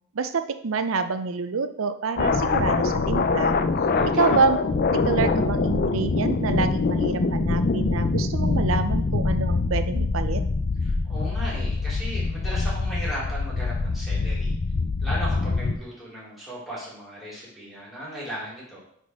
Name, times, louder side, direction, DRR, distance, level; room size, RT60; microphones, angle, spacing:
voice 1, 0.1-3.6 4.2-4.6 4.9-10.4, right 4 dB, 75° right, 10 dB, 0.6 m, -27 dB
sound 1, 2.2-15.8, left 3 dB, 45° left, 0.5 m, -24 dB
voice 2, 3.9-4.3 10.8-14.5 15.0-18.8, equal, ahead, -7 dB, 3.3 m, -36 dB
9.5 x 4.2 x 3.6 m, 0.66 s
head